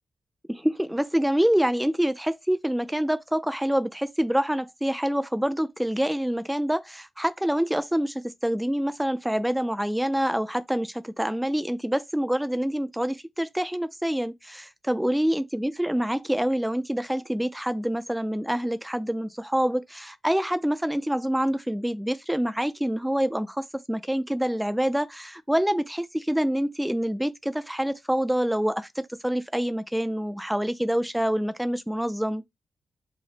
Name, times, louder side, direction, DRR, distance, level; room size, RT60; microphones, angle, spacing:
voice 1, 0.5-32.4, equal, 5° right, 0.4 m, -26 dB
4.9 x 2.0 x 4.2 m
wide cardioid pair, 160°, 0 cm